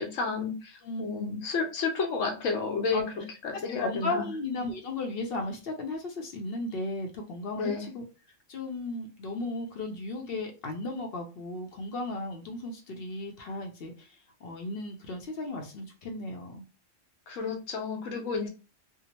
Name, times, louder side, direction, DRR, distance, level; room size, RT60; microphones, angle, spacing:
voice 1, 0.0-4.3 7.6-7.9 17.3-18.5, left 4 dB, 90° left, 4 dB, 1.1 m, -31 dB
voice 2, 0.8-1.4 2.9-3.0 3.5-8.0 8.5-16.6 18.4-18.5, left 2 dB, 60° left, 2 dB, 0.7 m, -35 dB
2.7 x 2.1 x 2.8 m, 0.32 s
omnidirectional pair, 1.3 m